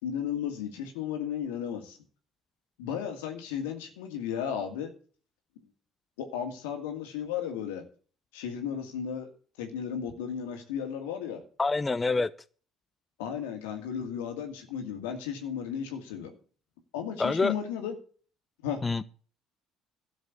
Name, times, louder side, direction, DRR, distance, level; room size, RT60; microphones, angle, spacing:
voice 1, 0.0-2.0 2.8-4.9 6.2-7.8 8.3-9.3 9.6-11.4 13.2-16.3 16.9-18.0 18.6-18.8, left 8 dB, 85° left, 2.2 m, -34 dB
voice 2, 11.6-12.3 17.2-17.5 18.8-19.0, left 3 dB, 25° left, 0.6 m, -26 dB
12.5 x 6.5 x 8.3 m
supercardioid pair, 75°, 0 cm